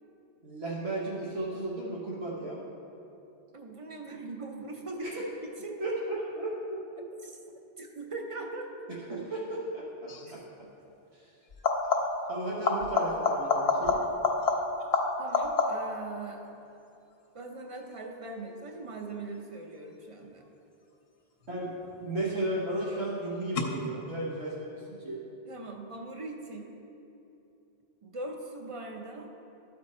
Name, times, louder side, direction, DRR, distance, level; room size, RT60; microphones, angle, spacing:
voice 1, 0.4-2.6 5.0-5.1 5.8-7.0 9.1-10.4 11.1-11.2 12.3-14.0 21.5-21.7 22.0-25.2, right 1 dB, 80° right, -7 dB, 1.4 m, -34 dB
voice 2, 3.5-6.0 7.2-7.4 7.8-8.7 15.2-16.6 17.3-20.5 25.5-26.7 28.0-29.3, right 2 dB, 35° right, 2 dB, 0.7 m, -41 dB
sound 1, 10.1-10.3 11.5-12.3 12.6-16.0 21.5-22.0 23.6-23.7, left 4 dB, 70° left, 1.0 m, -28 dB
12.5 x 4.4 x 4.2 m, 2.8 s
omnidirectional pair, 1.1 m